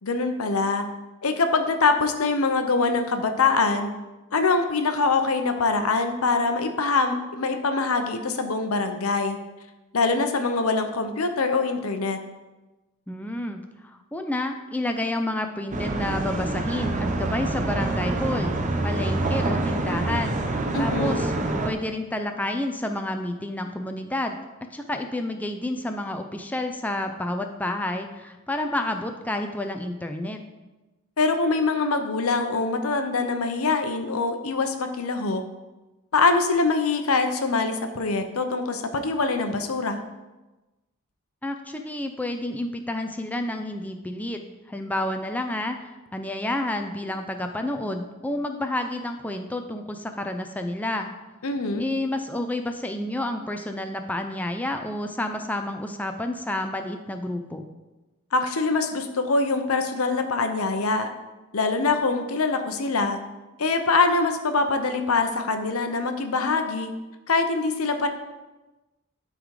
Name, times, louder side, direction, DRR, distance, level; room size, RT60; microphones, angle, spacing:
voice 1, 0.0-0.9 1.2-3.9 4.3-9.4 9.9-12.2 20.7-21.2 31.2-35.4 36.1-40.0 51.4-51.9 58.3-61.1 61.5-63.2 63.6-66.9 67.3-68.1, left 3 dB, 90° left, 7 dB, 0.8 m, -24 dB
voice 2, 13.1-18.5 18.8-20.4 20.8-21.3 21.6-24.4 24.7-30.5 41.4-51.1 51.8-57.6, left 1 dB, 5° left, 5 dB, 0.5 m, -30 dB
sound 1, 15.7-21.7, right 2 dB, 35° right, 0.7 m, -26 dB
11.5 x 3.9 x 4.8 m, 1.1 s
head